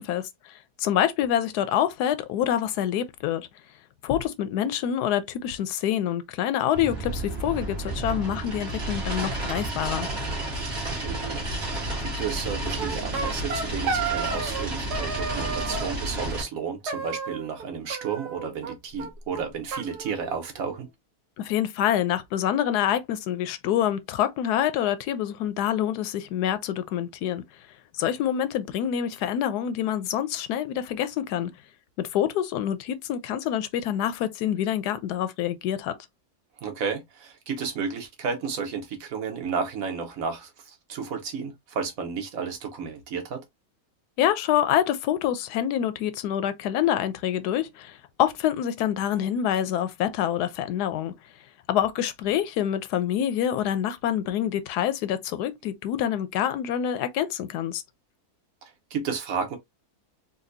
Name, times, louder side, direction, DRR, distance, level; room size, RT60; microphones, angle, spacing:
voice 1, 0.0-3.5 4.0-10.1 21.4-27.4 27.9-31.5 32.0-36.0 44.2-51.1 51.7-57.8, left 10 dB, 90° left, 1.1 m, -26 dB
sound 1, 6.7-16.4, right 2 dB, 45° right, 1.7 m, -31 dB
voice 2, 10.9-11.4 11.7-20.9 36.6-43.4 58.6-59.6, right 6 dB, 65° right, 1.3 m, -32 dB
sound 2, 12.8-14.7 14.9-15.9 16.9-17.6 17.9-18.7 19.0-19.1 19.3-19.4 19.7-20.8, right 5 dB, 85° right, 1.3 m, -32 dB
4.1 x 2.3 x 2.6 m
omnidirectional pair, 1.7 m